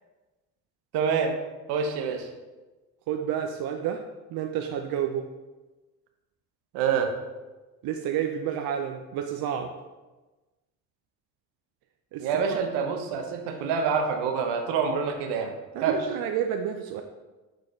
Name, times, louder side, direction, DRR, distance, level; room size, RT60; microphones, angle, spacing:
voice 1, 0.9-1.4 1.7-2.3 6.7-7.1 12.2-15.5 15.8-16.0, right 6 dB, 75° right, 5 dB, 1.0 m, -26 dB
voice 2, 3.1-4.0 4.3-5.3 7.8-9.7 12.1-12.5 15.7-17.0, right 9 dB, 60° right, 5 dB, 0.6 m, -30 dB
6.5 x 6.1 x 3.2 m, 1.2 s
hypercardioid pair, 65°, 41 cm